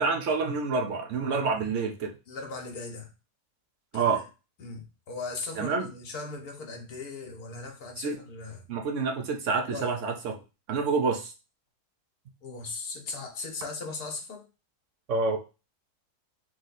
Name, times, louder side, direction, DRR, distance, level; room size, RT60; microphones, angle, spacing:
voice 1, 0.0-2.1 3.9-4.2 5.6-5.9 8.0-8.2 8.7-10.3 10.7-11.3 15.1-15.4, right 4 dB, 60° right, 3 dB, 1.0 m, -27 dB
voice 2, 2.3-3.1 3.9-4.2 4.6-8.7 9.7-9.9 12.4-14.5, left 3 dB, 80° left, 2 dB, 1.5 m, -38 dB
3.6 x 3.2 x 4.0 m, 0.30 s
omnidirectional pair, 1.6 m